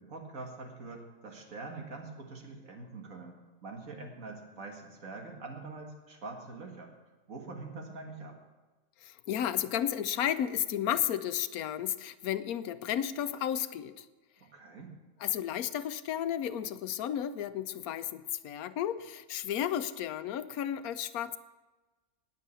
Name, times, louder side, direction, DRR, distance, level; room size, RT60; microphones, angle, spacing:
voice 1, 0.0-6.9 7.3-8.4 14.4-14.9, right 3 dB, 65° right, 2 dB, 2.3 m, -44 dB
voice 2, 9.0-14.1 15.2-21.4, left 10 dB, 90° left, 13 dB, 1.1 m, -33 dB
19.0 x 6.6 x 6.9 m, 1.2 s
omnidirectional pair, 1.5 m